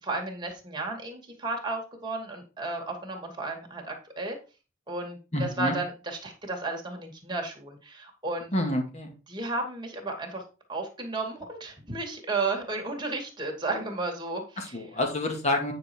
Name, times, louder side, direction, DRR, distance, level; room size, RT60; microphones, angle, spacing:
voice 1, 0.0-4.4 4.9-8.5 9.3-10.4 10.7-14.8, right 2 dB, 20° right, 1 dB, 2.4 m, -33 dB
voice 2, 5.3-5.7 8.5-9.1 14.6-15.7, left 1 dB, 35° left, 2 dB, 2.4 m, -28 dB
9.3 x 5.0 x 4.6 m, 0.33 s
head